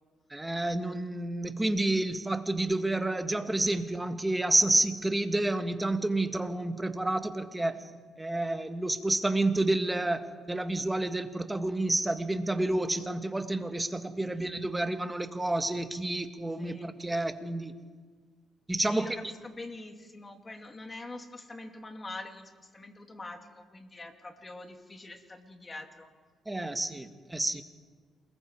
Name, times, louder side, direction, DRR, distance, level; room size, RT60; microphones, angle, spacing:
voice 1, 0.3-7.9 8.2-17.7 18.7-19.2 26.5-27.6, right 2 dB, 15° right, 8 dB, 1.8 m, -29 dB
voice 2, 16.6-16.9 18.9-26.1, left 2 dB, 30° left, 4 dB, 3.0 m, -44 dB
28.0 x 20.5 x 4.9 m, 1.5 s
supercardioid pair, 65°, 0 cm